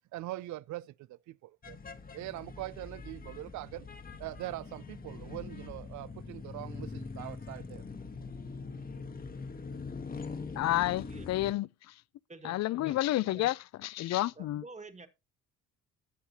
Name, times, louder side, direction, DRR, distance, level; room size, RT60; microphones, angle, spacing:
voice 1, 0.1-3.9 4.2-7.8, right 17 dB, 70° right, 0.5 m, -42 dB
sound 1, 1.6-11.5, left 4 dB, 30° left, 1.1 m, -43 dB
voice 2, 10.6-11.7 12.4-14.6, left 15 dB, 60° left, 0.4 m, -30 dB
voice 3, 12.3-13.5 14.3-15.1, right 3 dB, 25° right, 1.6 m, -50 dB
18.5 x 6.5 x 2.8 m
cardioid pair, 90°, 30 cm